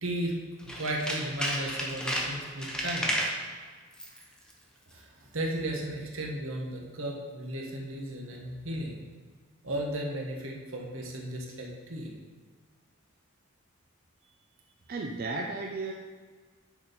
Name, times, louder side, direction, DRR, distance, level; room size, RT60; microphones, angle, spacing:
voice 1, 0.0-0.3 0.7-3.1 4.9-9.0 9.6-12.1, right 1 dB, 75° right, -1 dB, 1.3 m, -35 dB
Tools, 0.6-3.4 3.9-4.2 4.5-4.6, equal, 5° left, 0.8 m, -32 dB
voice 2, 14.9-15.9, right 3 dB, 45° right, 1 dB, 0.4 m, -34 dB
10.0 x 4.2 x 4.2 m, 1.5 s
head